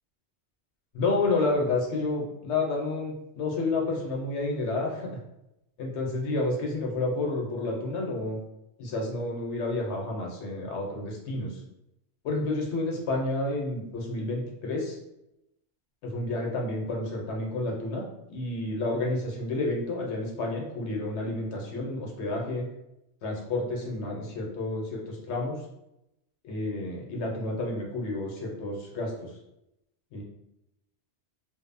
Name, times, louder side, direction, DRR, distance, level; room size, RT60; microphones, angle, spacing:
voice 1, 0.9-5.1 5.8-8.4 8.8-11.6 12.2-15.0 16.0-22.7 23.2-25.6 26.4-29.3 30.1-30.2, left 2 dB, 75° left, -1 dB, 0.9 m, -30 dB
2.6 x 2.0 x 2.5 m, 0.86 s
omnidirectional pair, 1.2 m